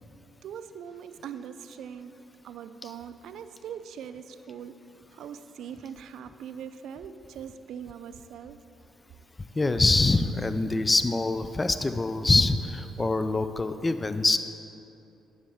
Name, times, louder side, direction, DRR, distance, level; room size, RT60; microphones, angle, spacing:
voice 1, 0.4-2.1 2.4-4.8 5.1-8.6, right 8 dB, 70° right, 11 dB, 0.3 m, -41 dB
voice 2, 9.5-14.4, left 2 dB, 25° left, 11 dB, 0.3 m, -24 dB
9.7 x 6.3 x 3.5 m, 2.7 s
supercardioid pair, 55°, 0 cm